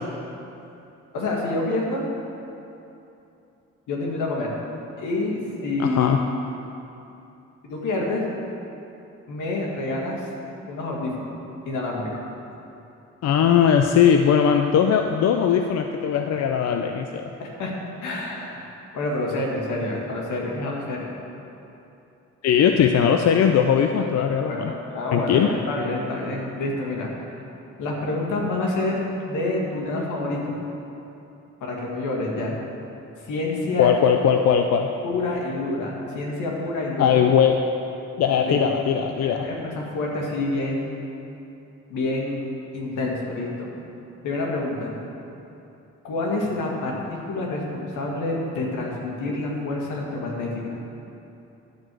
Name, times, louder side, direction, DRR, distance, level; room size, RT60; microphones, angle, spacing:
voice 1, 1.1-2.0 3.9-4.5 5.0-6.3 7.6-8.2 9.3-10.3 10.7-11.4 11.7-12.1 17.4-17.7 18.0-18.7 18.9-21.1 24.4-27.3 27.8-28.9 29.3-30.6 31.6-32.6 33.2-33.9 35.0-37.2 38.4-38.6 39.2-41.0 41.9-42.4 42.7-43.7 44.2-44.9 46.0-50.8, left 2 dB, 80° left, -2 dB, 1.9 m, -28 dB
voice 2, 5.8-6.2 13.2-17.3 22.4-24.7 25.1-25.5 33.8-34.9 37.0-37.6 38.2-39.5, left 8 dB, 60° left, 5 dB, 0.5 m, -19 dB
11.5 x 4.6 x 7.6 m, 2.8 s
cardioid pair, 90°, 30 cm